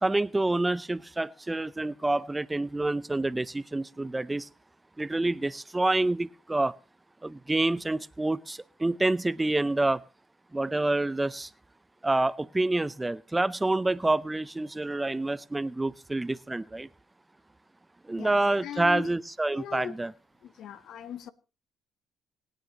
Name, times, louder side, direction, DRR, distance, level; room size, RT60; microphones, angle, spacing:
voice 1, 0.0-4.5 5.0-6.7 7.2-10.0 10.5-11.5 12.0-16.9 18.0-20.1, right 2 dB, 15° right, 0.6 m, -27 dB
voice 2, 18.2-19.1 19.5-20.0 20.4-21.3, left 9 dB, 65° left, 1.0 m, -39 dB
26.5 x 9.2 x 3.0 m
hypercardioid pair, 55°, 0 cm